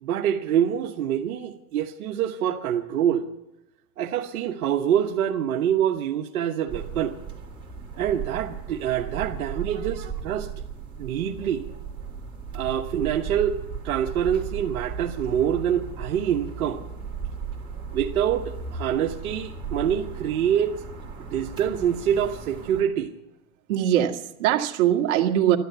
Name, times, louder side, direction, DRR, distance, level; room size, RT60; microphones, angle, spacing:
voice 1, 0.0-3.3 4.0-7.2 8.0-10.5 11.0-11.6 12.5-13.6 13.8-16.8 17.9-20.7 21.3-23.1, right 9 dB, 80° right, 1 dB, 1.4 m, -25 dB
sound 1, 6.7-22.8, right 5 dB, 10° right, 3.9 m, -36 dB
voice 2, 9.7-10.1 23.7-25.6, right 11 dB, 55° right, 2 dB, 2.1 m, -23 dB
14.5 x 12.0 x 8.2 m, 0.87 s
supercardioid pair, 135°, 43 cm